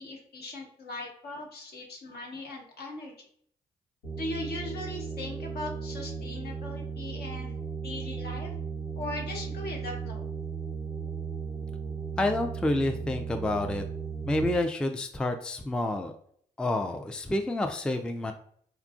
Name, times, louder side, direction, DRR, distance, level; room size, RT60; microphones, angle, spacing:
voice 1, 0.0-3.1 4.2-7.6 7.8-8.5 9.0-10.2, left 2 dB, 65° left, 0 dB, 1.0 m, -39 dB
sound 1, 4.0-14.6, right 5 dB, 90° left, 0.9 m, -36 dB
voice 2, 12.2-13.8 14.2-16.1 16.6-18.3, left 1 dB, 5° left, 5 dB, 0.3 m, -28 dB
3.7 x 2.3 x 2.4 m, 0.63 s
hypercardioid pair, 45°, 18 cm